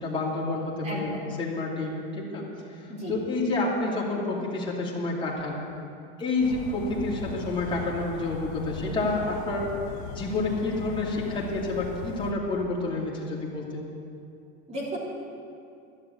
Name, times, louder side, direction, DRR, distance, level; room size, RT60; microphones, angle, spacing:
voice 1, 0.0-1.1 1.4-2.4 2.8-5.6 6.2-9.7 10.1-13.8, left 2 dB, 15° left, -4 dB, 2.5 m, -29 dB
voice 2, 0.8-1.3 2.9-3.1 14.7-15.0, equal, 20° right, -4 dB, 3.2 m, -34 dB
sound 1, 6.4-12.3, left 5 dB, 75° left, 1.0 m, -38 dB
13.0 x 7.1 x 9.7 m, 2.5 s
supercardioid pair, 150°, 33 cm